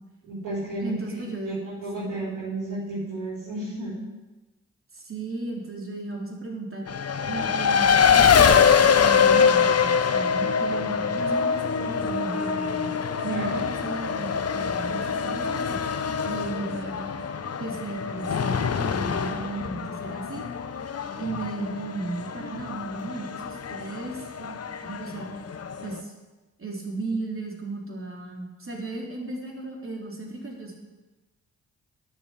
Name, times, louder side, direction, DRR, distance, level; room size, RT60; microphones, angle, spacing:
voice 1, 0.2-4.0 13.3-13.7, right 1 dB, 85° right, -10 dB, 4.6 m, -33 dB
voice 2, 0.8-1.7 2.0-2.1 4.9-6.9 7.3-12.9 13.2-15.8 16.2-17.1 17.6-20.4 21.2-25.3 25.8-26.1 26.6-30.8, right 3 dB, 35° right, -1 dB, 3.7 m, -35 dB
Race car auto racing, 6.9-26.0, left 6 dB, 45° left, 0.9 m, -24 dB
9.8 x 7.1 x 8.2 m, 1.1 s
hypercardioid pair, 45°, 36 cm